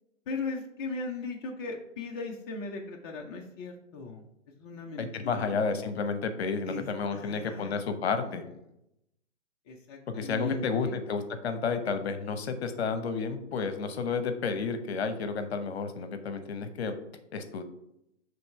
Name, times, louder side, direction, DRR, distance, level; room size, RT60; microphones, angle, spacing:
voice 1, 0.3-4.2 4.6-5.5 6.7-6.8 7.1-7.8 8.2-8.3 9.7-11.0, left 3 dB, 20° left, 0 dB, 0.5 m, -38 dB
voice 2, 5.0-8.4 10.1-17.0 17.3-17.6, left 5 dB, 60° left, 9 dB, 0.9 m, -31 dB
6.8 x 3.2 x 4.6 m, 0.81 s
figure-of-eight pair, 130°, 37 cm